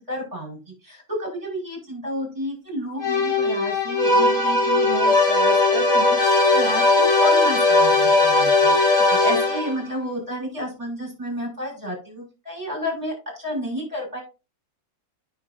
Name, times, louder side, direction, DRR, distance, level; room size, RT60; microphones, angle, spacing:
voice 1, 0.1-14.2, equal, 25° right, -1 dB, 5.3 m, -31 dB
sound 1, 3.0-9.9, left 2 dB, 55° left, 3.2 m, -18 dB
9.7 x 6.3 x 2.6 m, 0.29 s
omnidirectional pair, 1.6 m